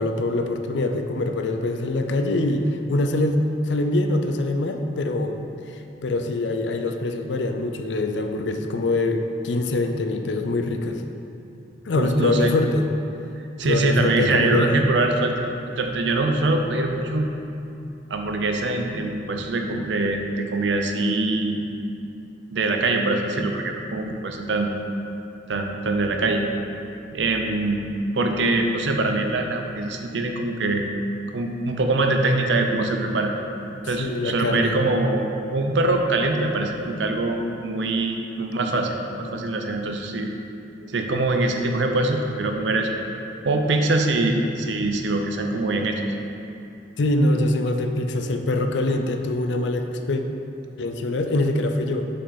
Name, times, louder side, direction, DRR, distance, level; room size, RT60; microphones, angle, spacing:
voice 1, 0.0-5.3 5.7-11.0 11.9-12.9 13.6-14.8 33.8-34.7 40.8-40.9 47.0-50.2 50.8-52.1, left 2 dB, 75° left, 6 dB, 0.5 m, -24 dB
voice 2, 11.9-12.5 13.6-15.5 15.8-17.3 18.1-21.6 22.5-24.7 25.5-26.4 27.1-30.8 31.3-33.3 33.9-35.3 35.5-40.3 40.9-42.9 43.4-46.0, right 2 dB, 75° right, 4 dB, 0.6 m, -23 dB
6.2 x 5.8 x 4.0 m, 2.7 s
head